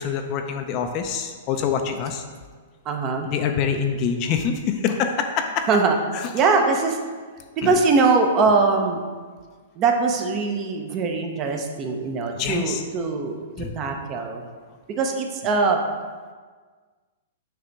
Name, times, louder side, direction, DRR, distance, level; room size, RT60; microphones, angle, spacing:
voice 1, 0.0-2.2 3.3-5.7 6.1-6.2 7.6-7.7 12.3-12.8 13.6-13.7, left 7 dB, 35° left, 5 dB, 0.5 m, -25 dB
voice 2, 2.9-3.3 5.7-6.0 6.3-7.0 7.6-9.0 9.8-13.4 13.7-14.4 15.0-15.8, right 4 dB, 30° right, 4 dB, 0.7 m, -21 dB
6.7 x 3.4 x 5.2 m, 1.5 s
hypercardioid pair, 150°, 0 cm